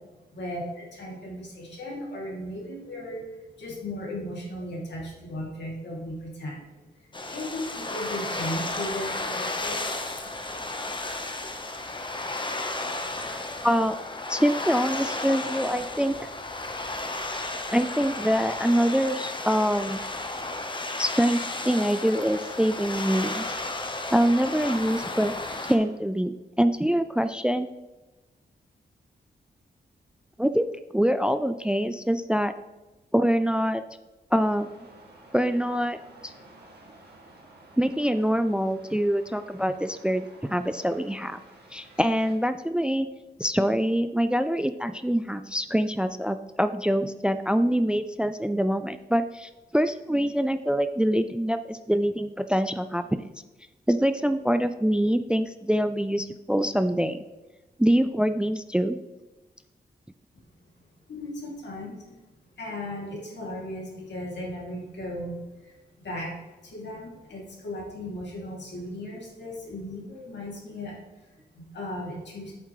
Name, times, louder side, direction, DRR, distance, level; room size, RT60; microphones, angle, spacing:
voice 1, 0.3-9.9 60.3-60.4 61.1-62.2 62.6-66.3 66.6-70.9 71.2-72.5, left 1 dB, 75° left, -3 dB, 2.7 m, -36 dB
sound 1, 7.1-25.8, left 2 dB, 25° left, 1.0 m, -33 dB
voice 2, 13.3-14.0 14.3-16.1 17.7-20.0 21.0-23.6 24.1-25.3 25.6-27.7 30.4-30.7 30.9-32.5 33.1-33.8 34.3-34.7 35.3-36.0 36.2-36.3 37.8-41.4 41.7-43.1 43.4-53.2 53.9-57.2 57.8-59.0, equal, 5° right, 11 dB, 0.4 m, -25 dB
sound 2, 34.3-42.3, right 2 dB, 65° right, 2.1 m, -52 dB
8.3 x 7.3 x 3.2 m, 1.1 s
cardioid pair, 55°, 18 cm